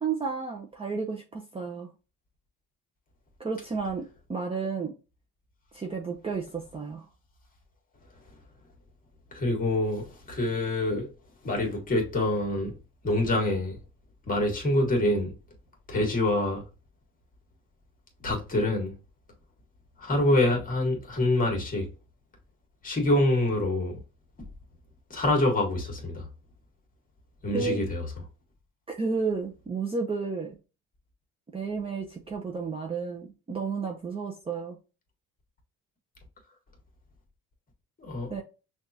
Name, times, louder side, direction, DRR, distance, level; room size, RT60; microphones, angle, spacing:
voice 1, 0.0-1.9 3.4-4.9 5.7-7.0 27.5-27.8 28.9-30.5 31.5-34.8 38.3-38.4, right 5 dB, 20° right, 0.6 m, -32 dB
voice 2, 9.3-11.1 11.4-12.7 13.0-13.8 14.3-15.3 15.9-16.6 18.2-18.9 20.0-21.9 22.8-23.9 25.1-26.3 27.4-28.0 38.0-38.3, left 1 dB, 25° left, 1.6 m, -26 dB
5.7 x 2.5 x 2.7 m
cardioid pair, 130°, 32 cm